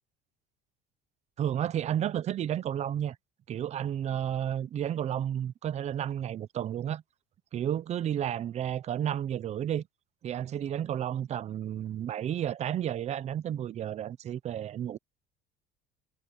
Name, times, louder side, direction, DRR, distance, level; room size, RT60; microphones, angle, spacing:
voice 1, 1.4-3.2 3.5-7.0 7.5-9.8 10.2-15.0, right 10 dB, 35° right, 0.7 m, -32 dB
cardioid pair, 150°, 19 cm